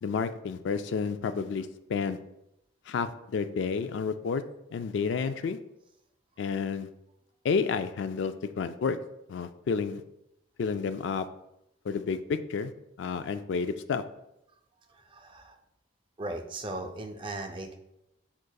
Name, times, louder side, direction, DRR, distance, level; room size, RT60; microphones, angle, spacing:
voice 1, 0.0-2.2 2.9-4.4 4.7-5.6 6.4-6.9 7.4-9.0 9.3-10.0 10.6-11.3 11.9-12.7 13.0-14.0, left 5 dB, 70° left, 10 dB, 0.3 m, -30 dB
voice 2, 14.9-15.6 16.2-17.7, right 2 dB, 25° right, 3 dB, 0.4 m, -38 dB
6.5 x 3.6 x 2.3 m, 0.86 s
head